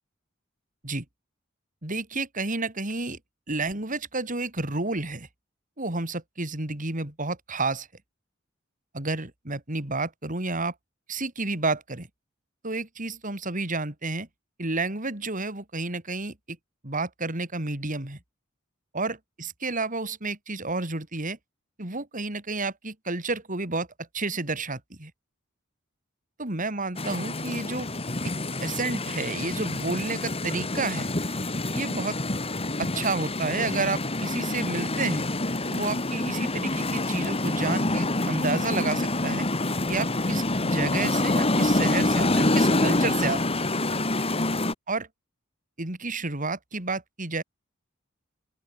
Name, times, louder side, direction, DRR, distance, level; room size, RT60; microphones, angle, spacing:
voice 1, 1.8-3.2 3.5-5.3 5.8-7.9 8.9-10.7 11.1-12.1 12.6-14.3 14.6-16.6 16.8-18.2 18.9-21.4 21.8-25.1 26.4-27.9 28.2-28.3 28.6-31.1 31.7-32.2 32.8-35.2 35.7-39.5 39.9-43.7 44.9-45.1 45.8-47.4, right 3 dB, 40° right, 3.6 m, -30 dB
sound 1, 27.0-44.7, left 2 dB, 30° left, 3.1 m, -27 dB
open air
head